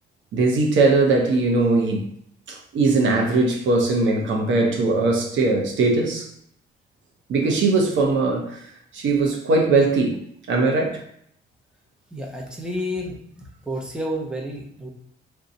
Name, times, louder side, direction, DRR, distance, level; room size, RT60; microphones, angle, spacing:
voice 1, 0.3-2.1 2.5-6.3 7.3-11.0, right 3 dB, 70° right, 0.8 m, -20 dB
voice 2, 12.1-13.2 13.7-14.9, equal, 5° right, 0.7 m, -30 dB
2.8 x 2.2 x 3.9 m
cardioid pair, 90°, 20 cm